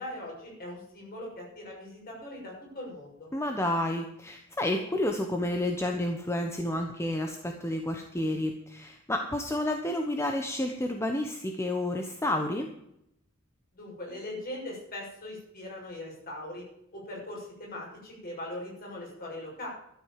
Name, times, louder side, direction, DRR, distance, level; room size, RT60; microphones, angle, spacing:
voice 1, 0.0-3.3 13.7-16.7 16.9-19.7, left 1 dB, 45° left, -2 dB, 6.7 m, -40 dB
voice 2, 3.3-12.7, left 1 dB, 15° left, 3 dB, 1.0 m, -30 dB
12.5 x 8.2 x 7.5 m, 0.77 s
head